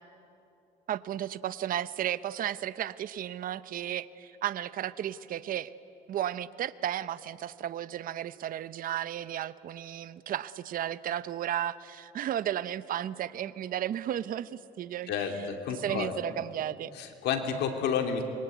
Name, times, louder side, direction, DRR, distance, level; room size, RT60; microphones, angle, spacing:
voice 1, 0.9-5.7 6.1-15.3 15.7-16.9, right 11 dB, 55° right, 15 dB, 0.8 m, -34 dB
voice 2, 15.1-16.2 16.9-18.2, left 7 dB, 80° left, 5 dB, 2.9 m, -30 dB
26.5 x 23.0 x 9.4 m, 2.9 s
cardioid pair, 110°, 17 cm